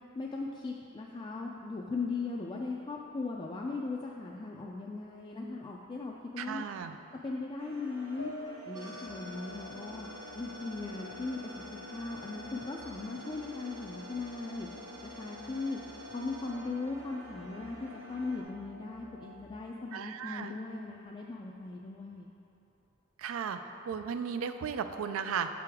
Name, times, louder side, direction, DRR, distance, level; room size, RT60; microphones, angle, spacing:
voice 1, 0.2-6.6 7.2-8.3 8.7-10.1 10.3-14.7 15.0-22.3, left 3 dB, 25° left, -2 dB, 0.3 m, -38 dB
voice 2, 6.4-7.0 19.9-20.5 23.2-23.6 23.9-25.5, right 7 dB, 70° right, 9 dB, 0.3 m, -35 dB
sound 1, 7.6-18.4, equal, 90° right, 1.1 m, -49 dB
sound 2, 8.2-11.6 12.0-13.0, equal, 70° left, 0.7 m, -50 dB
sound 3, 8.7-19.5, left 1 dB, 20° right, 0.7 m, -49 dB
7.6 x 4.8 x 3.5 m, 2.9 s
head